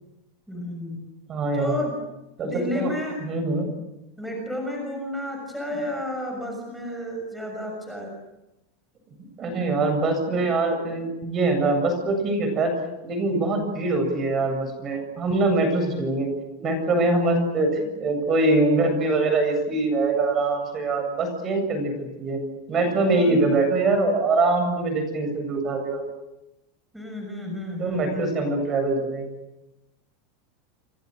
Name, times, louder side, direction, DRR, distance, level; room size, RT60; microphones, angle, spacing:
voice 1, 0.5-1.0 1.5-2.0 2.4-3.2 4.2-8.1 23.1-23.4 26.9-28.5, left 1 dB, ahead, 1 dB, 6.5 m, -31 dB
voice 2, 1.3-1.8 2.4-3.7 9.4-12.7 13.0-16.3 16.6-22.4 22.7-26.0 27.8-29.3, right 2 dB, 25° right, 6 dB, 7.8 m, -23 dB
29.0 x 28.5 x 6.6 m, 0.94 s
supercardioid pair, 165°, 0 cm